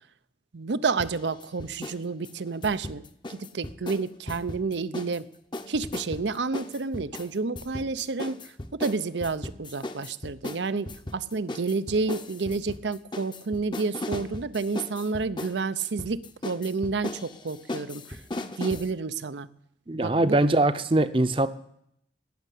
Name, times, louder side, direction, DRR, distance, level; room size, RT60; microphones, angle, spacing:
voice 1, 0.5-3.0 3.3-5.3 5.7-18.2 18.6-19.5 19.9-20.4, right 4 dB, 85° right, 15 dB, 0.7 m, -30 dB
sound 1, 1.0-5.2 5.5-18.9, left 2 dB, 25° left, 0.7 m, -37 dB
voice 2, 19.9-21.5, right 2 dB, 30° right, 13 dB, 0.7 m, -22 dB
17.5 x 6.7 x 10.0 m, 0.72 s
head